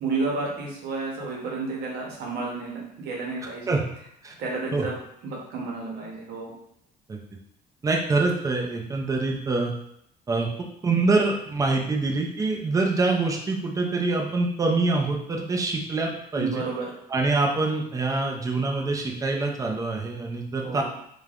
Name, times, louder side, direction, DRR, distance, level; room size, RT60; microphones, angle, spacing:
voice 1, 0.0-3.8 4.4-4.9 5.2-6.5 16.3-16.9 20.6-20.8, right 3 dB, 75° right, -2 dB, 0.8 m, -31 dB
voice 2, 7.8-9.7 10.3-10.5 10.8-16.6 17.1-20.8, right 3 dB, 20° right, 1 dB, 0.5 m, -25 dB
3.1 x 2.2 x 2.4 m, 0.73 s
cardioid pair, 110°, 17 cm